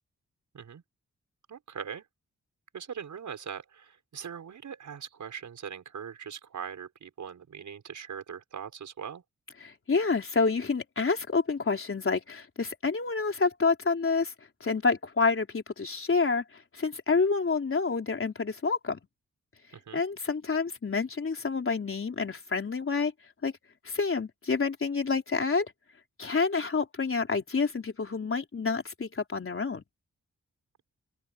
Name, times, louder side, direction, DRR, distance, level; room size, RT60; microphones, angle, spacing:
voice 1, 1.5-2.0 2.7-9.2 19.7-20.0, right 7 dB, 80° right, 6.6 m, -41 dB
voice 2, 9.6-14.3 14.6-19.0 19.9-23.1 23.4-23.5 23.8-25.7 26.2-29.8, left 4 dB, 45° left, 4.0 m, -28 dB
open air
cardioid pair, 75°, 29 cm